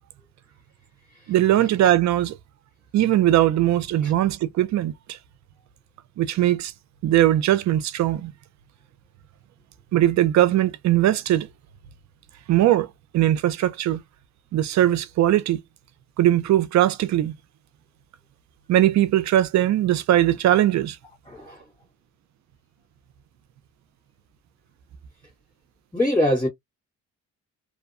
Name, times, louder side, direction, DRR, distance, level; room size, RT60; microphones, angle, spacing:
voice 1, 1.3-2.3 2.9-5.2 6.2-6.7 7.0-8.3 9.9-11.5 12.5-12.9 13.1-14.0 14.5-15.6 16.2-17.3 18.7-21.0, right 13 dB, 65° right, 0.5 m, -20 dB
voice 2, 21.2-21.7 25.9-26.5, left 1 dB, 10° left, 1.4 m, -24 dB
2.7 x 2.2 x 2.4 m
cardioid pair, 90°, 30 cm